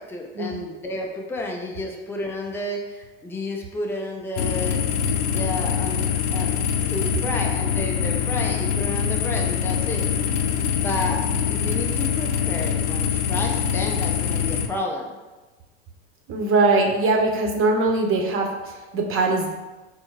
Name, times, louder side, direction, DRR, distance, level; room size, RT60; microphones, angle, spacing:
voice 1, 0.0-4.8 5.3-6.5 6.9-10.1 10.7-15.1, left 2 dB, 5° left, 1 dB, 0.5 m, -31 dB
sound 1, 4.4-14.7, left 8 dB, 80° left, 0.5 m, -24 dB
voice 2, 16.3-19.5, right 3 dB, 40° right, 2 dB, 0.9 m, -21 dB
4.3 x 2.2 x 4.6 m, 1.2 s
hypercardioid pair, 100°, 34 cm